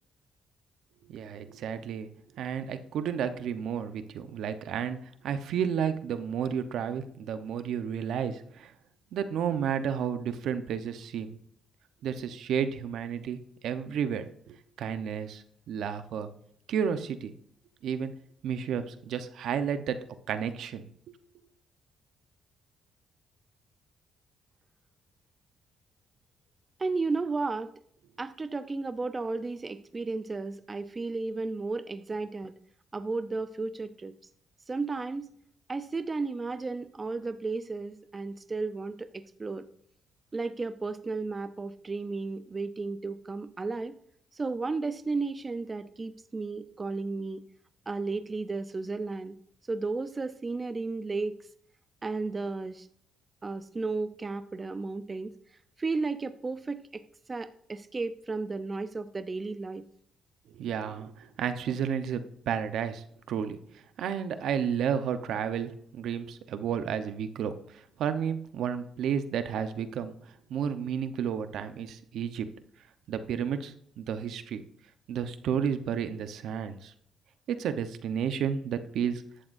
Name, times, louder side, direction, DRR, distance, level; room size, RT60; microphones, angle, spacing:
voice 1, 1.1-2.1 2.3-8.7 9.1-11.3 12.0-16.3 16.7-17.3 17.8-18.1 18.4-21.2 60.5-70.1 70.5-72.5 73.1-74.6 75.1-76.9 77.5-79.2, right 8 dB, 75° right, 9 dB, 1.0 m, -32 dB
voice 2, 26.8-27.7 28.2-32.5 32.9-34.1 34.7-35.3 35.7-39.7 40.3-43.9 44.3-47.4 47.9-49.4 49.7-51.4 52.0-52.9 53.4-55.3 55.8-57.0 57.3-59.8, right 3 dB, 25° right, 11 dB, 0.6 m, -33 dB
14.5 x 11.5 x 2.7 m, 0.66 s
cardioid pair, 90°, 0 cm